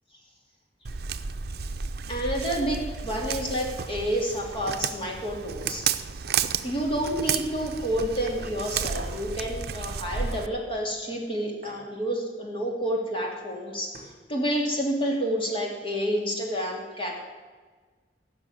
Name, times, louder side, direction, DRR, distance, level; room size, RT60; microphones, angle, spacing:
Walk footsteps, 0.8-10.5, right 6 dB, 65° right, 0.6 m, -32 dB
voice 1, 2.1-5.8 6.6-13.9 14.3-17.2, equal, 30° left, 0 dB, 2.9 m, -29 dB
sound 1, 3.7-3.9 4.3-4.6 5.0-5.2 5.6-6.8 7.1-7.5 7.9-8.0 8.9-9.3 10.3-10.4 11.6-11.8 13.5-13.6 13.9-14.2, right 2 dB, 45° right, 2.7 m, -46 dB
16.5 x 6.1 x 9.3 m, 1.4 s
head